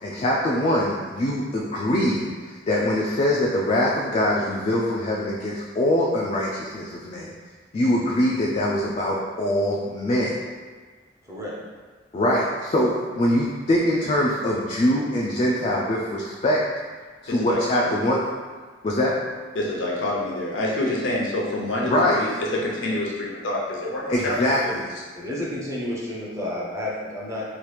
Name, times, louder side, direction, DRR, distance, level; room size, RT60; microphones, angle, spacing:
voice 1, 0.0-7.3 7.7-10.4 12.1-16.6 17.2-18.2 18.8-19.2 21.9-22.4 24.1-24.9, left 1 dB, 35° left, -4 dB, 0.3 m, -23 dB
voice 2, 17.3-18.0 19.5-24.3 24.6-24.7, left 1 dB, 80° left, -4 dB, 0.7 m, -27 dB
voice 3, 25.1-27.4, left 1 dB, 15° right, -5 dB, 0.5 m, -30 dB
2.9 x 2.3 x 3.2 m, 1.5 s
head